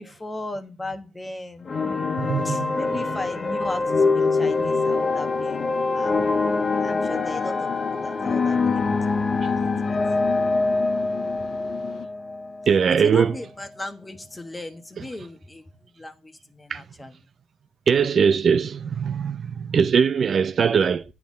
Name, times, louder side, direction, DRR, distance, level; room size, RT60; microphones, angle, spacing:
voice 1, 0.0-6.2 6.8-10.0 13.0-17.1, left 2 dB, 15° left, 1.1 m, -37 dB
sound 1, 1.7-12.9, left 3 dB, 35° left, 0.8 m, -24 dB
voice 2, 2.2-2.8 12.7-13.3 16.7-16.8 17.9-21.0, right 6 dB, 50° right, 0.4 m, -21 dB
sound 2, 4.4-12.1, left 9 dB, 60° left, 0.4 m, -37 dB
8.9 x 3.6 x 6.3 m
cardioid pair, 90°, 0 cm